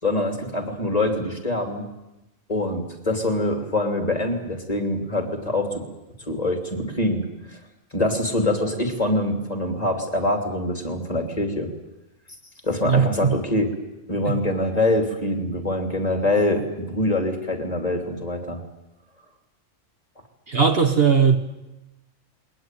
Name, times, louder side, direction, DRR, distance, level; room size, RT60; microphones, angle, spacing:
voice 1, 0.0-1.9 2.5-5.8 6.3-7.6 7.9-11.7 12.6-13.7 14.1-18.6, left 1 dB, 30° left, 3.2 m, -24 dB
voice 2, 12.8-13.3 14.2-14.4 20.5-21.4, right 6 dB, 50° right, 1.5 m, -18 dB
21.5 x 19.0 x 9.3 m
omnidirectional pair, 1.4 m